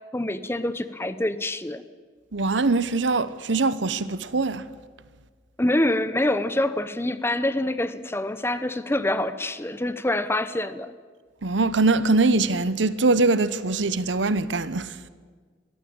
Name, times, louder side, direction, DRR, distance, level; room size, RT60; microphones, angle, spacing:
voice 1, 0.1-1.8 5.6-10.9, left 1 dB, 15° left, 0.8 m, -26 dB
voice 2, 2.3-4.6 11.4-15.1, right 3 dB, 80° right, 0.9 m, -22 dB
22.0 x 14.0 x 8.8 m
head